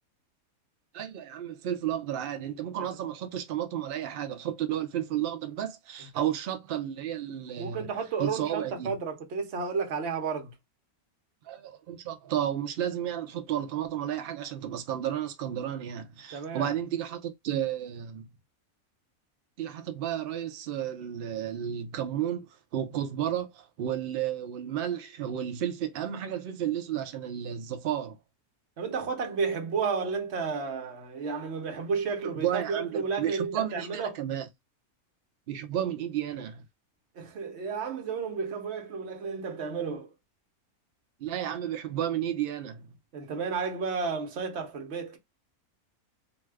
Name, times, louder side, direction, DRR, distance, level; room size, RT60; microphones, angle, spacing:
voice 1, 0.9-7.9 8.2-8.9 11.4-18.3 19.6-28.2 32.4-34.5 35.5-36.6 41.2-42.9, right 10 dB, 85° right, 0.5 m, -32 dB
voice 2, 7.6-10.5 16.3-16.7 28.8-34.2 35.7-35.8 37.2-40.1 43.1-45.2, right 5 dB, 55° right, 1.0 m, -32 dB
2.6 x 2.3 x 3.3 m
omnidirectional pair, 1.5 m